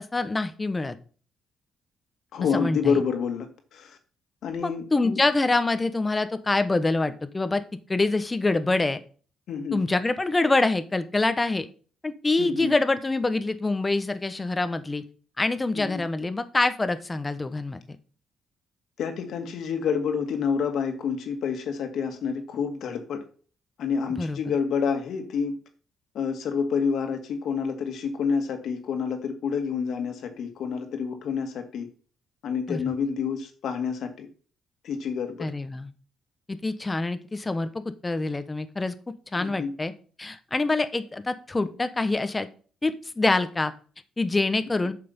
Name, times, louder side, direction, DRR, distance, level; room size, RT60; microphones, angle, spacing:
voice 1, 0.1-1.0 2.5-3.0 4.5-7.6 7.9-9.0 9.7-11.7 12.0-15.0 15.4-17.8 24.2-24.5 32.7-32.8 35.4-35.9 36.5-38.9 39.3-39.9 40.2-42.5 42.8-43.7 44.2-44.9, left 2 dB, 20° left, 11 dB, 1.1 m, -25 dB
voice 2, 2.3-4.0 4.4-5.2 9.5-9.8 12.4-12.7 15.7-16.0 19.0-23.2 23.8-25.6 26.1-31.9 32.4-34.3 34.8-35.5 39.4-39.7, left 6 dB, 70° left, 6 dB, 2.0 m, -28 dB
8.4 x 6.8 x 5.4 m, 0.40 s
cardioid pair, 90°, 0 cm